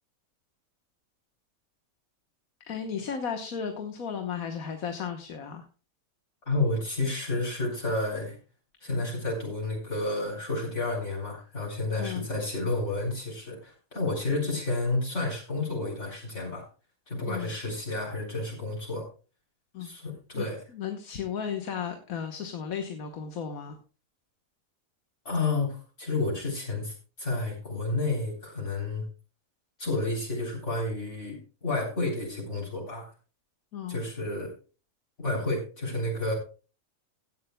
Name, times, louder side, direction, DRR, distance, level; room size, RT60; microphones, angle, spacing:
voice 1, 2.7-5.6 12.0-12.3 17.3-17.5 19.7-19.9 20.3-23.8 33.7-34.0, left 7 dB, 80° left, 6 dB, 1.6 m, -35 dB
voice 2, 6.5-8.4 8.8-16.6 17.1-19.1 19.8-20.6 25.3-29.0 29.8-33.0 33.9-34.5 35.2-36.3, left 2 dB, 55° left, -4 dB, 4.0 m, -30 dB
16.5 x 11.0 x 2.2 m, 0.35 s
omnidirectional pair, 1.5 m